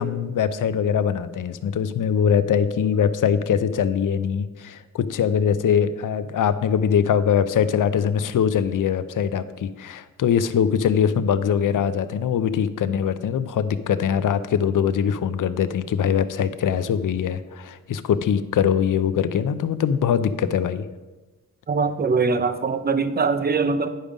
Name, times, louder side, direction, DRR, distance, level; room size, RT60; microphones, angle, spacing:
voice 1, 0.0-20.9, left 8 dB, 75° left, 13 dB, 0.5 m, -22 dB
voice 2, 21.7-23.9, right 4 dB, 30° right, 10 dB, 0.6 m, -22 dB
10.0 x 5.2 x 5.1 m, 1.2 s
wide cardioid pair, 120°, 32 cm